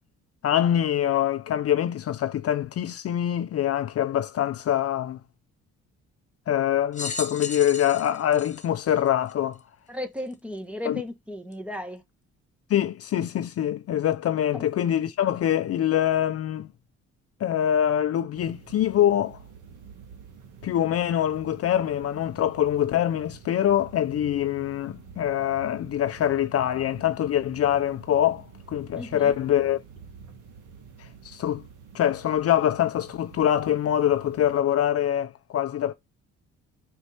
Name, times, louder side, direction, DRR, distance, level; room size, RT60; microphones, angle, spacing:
voice 1, 0.4-5.2 6.5-9.6 10.9-11.0 12.7-16.7 17.4-19.4 20.6-29.8 31.0-31.6 31.9-35.9, left 10 dB, 55° left, 0.5 m, -24 dB
sound 1, 6.9-9.6 10.3-10.4 11.5-11.6, left 4 dB, 25° left, 1.1 m, -36 dB
voice 2, 9.9-12.0 14.5-14.6 28.9-29.3, left 1 dB, 5° right, 1.3 m, -35 dB
sound 2, 18.3-34.6, right 6 dB, 80° right, 1.9 m, -48 dB
5.4 x 4.8 x 4.3 m
cardioid pair, 90°, 30 cm